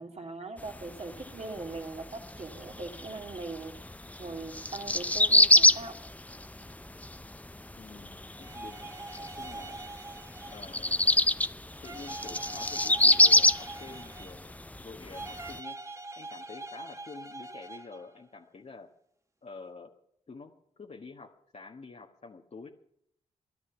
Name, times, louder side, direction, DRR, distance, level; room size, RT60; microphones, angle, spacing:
voice 1, 0.0-3.7 4.2-6.0, right 3 dB, 40° right, 3 dB, 2.6 m, -40 dB
sound 1, 0.6-15.6, left 1 dB, 10° left, 0.6 m, -26 dB
voice 2, 7.8-9.8 10.5-11.1 11.8-15.8 16.2-18.9 19.4-19.9 20.3-20.5 20.8-22.7, left 4 dB, 40° left, 0 dB, 1.4 m, -48 dB
sound 2, 8.3-11.2 11.8-14.6 15.1-18.1, right 2 dB, 20° right, 1.4 m, -43 dB
13.5 x 11.0 x 7.1 m, 0.70 s
hypercardioid pair, 40°, 16 cm